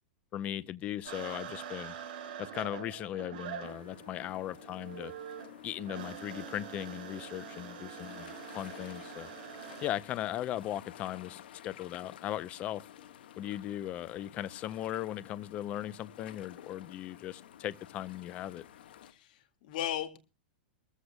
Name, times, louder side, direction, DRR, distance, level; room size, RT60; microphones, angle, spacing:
voice 1, 0.3-1.9 2.4-5.1 5.6-9.3 9.8-12.8 13.4-18.7, left 12 dB, 25° left, 0.6 m, -38 dB
sound 1, 1.0-9.9, right 9 dB, 55° right, 6.3 m, -45 dB
sound 2, 3.6-19.1, left 11 dB, 75° left, 1.4 m, -52 dB
voice 2, 19.0-20.2, left 11 dB, 55° left, 2.0 m, -37 dB
23.0 x 14.5 x 2.2 m
supercardioid pair, 165°, 5 cm